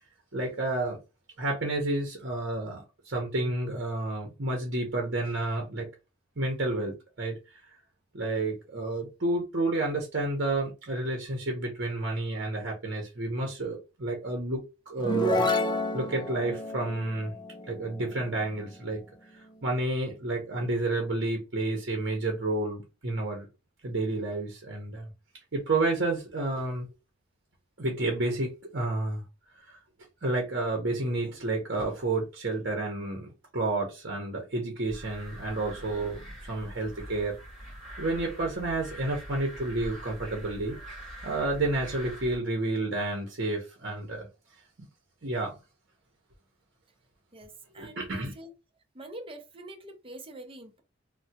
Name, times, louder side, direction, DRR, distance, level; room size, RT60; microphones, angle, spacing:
voice 1, 0.3-1.0 1.4-5.9 6.4-7.4 8.1-15.5 15.9-17.3 17.7-19.0 19.3-23.5 23.8-25.1 25.5-26.9 27.8-29.2 29.6-29.8 30.2-37.4 38.0-40.8 41.2-44.3 45.2-45.5 47.8-48.3, right 2 dB, 60° right, 0.9 m, -30 dB
sound 1, 15.0-18.6, left 1 dB, 25° left, 0.4 m, -30 dB
sound 2, 34.8-42.4, equal, ahead, 1.8 m, -43 dB
voice 2, 47.3-48.5 48.9-50.8, right 1 dB, 30° right, 0.7 m, -45 dB
3.3 x 2.2 x 2.8 m
head